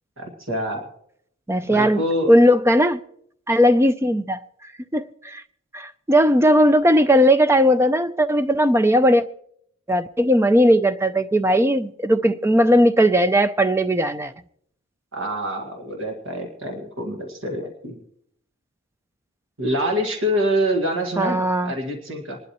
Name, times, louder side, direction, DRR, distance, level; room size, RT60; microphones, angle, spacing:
voice 1, 0.2-0.9 1.6-2.3 15.1-18.0 19.6-22.4, equal, 60° right, 1.9 m, -26 dB
voice 2, 1.5-2.0 2.3-3.0 3.5-5.4 5.7-9.2 9.9-14.3 21.2-21.7, equal, 10° right, 0.4 m, -18 dB
26.5 x 11.5 x 3.1 m
head